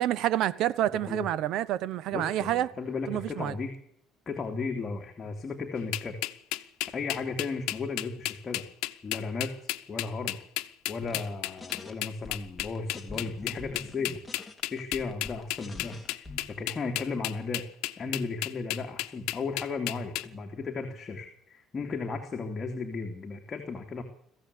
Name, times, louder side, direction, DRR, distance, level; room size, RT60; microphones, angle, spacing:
voice 1, 0.0-2.7 3.1-3.5, right 13 dB, 65° right, 1.1 m, -28 dB
voice 2, 0.9-1.3 2.1-3.8 4.3-6.2 6.9-8.7 9.0-9.5 9.9-10.4 10.9-14.2 14.7-17.6 18.0-24.0, left 4 dB, 30° left, 3.1 m, -35 dB
sound 1, 5.9-20.3, left 18 dB, 85° left, 1.0 m, -33 dB
sound 2, 11.1-11.3 11.6-11.9 12.2-16.6, left 3 dB, 10° left, 2.9 m, -45 dB
21.5 x 15.0 x 8.5 m
cardioid pair, 125°, 0 cm